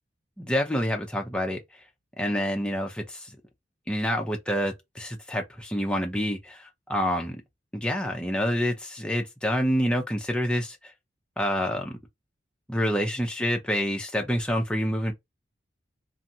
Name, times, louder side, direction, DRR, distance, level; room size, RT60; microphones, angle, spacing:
voice 1, 0.4-1.6 2.2-3.4 3.9-7.4 7.7-10.9 11.4-12.0 12.7-15.1, equal, 5° left, 0.6 m, -27 dB
2.8 x 2.6 x 2.7 m
head